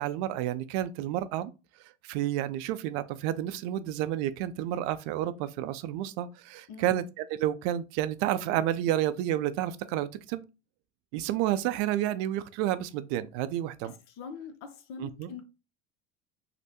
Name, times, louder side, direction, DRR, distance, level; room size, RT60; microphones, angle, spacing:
voice 1, 0.0-1.5 2.0-10.4 11.1-13.9 15.0-15.3, right 12 dB, 60° right, 0.5 m, -30 dB
voice 2, 6.7-7.0 13.8-15.5, left 5 dB, 50° left, 0.7 m, -43 dB
3.2 x 2.1 x 2.9 m
hypercardioid pair, 90°, 35 cm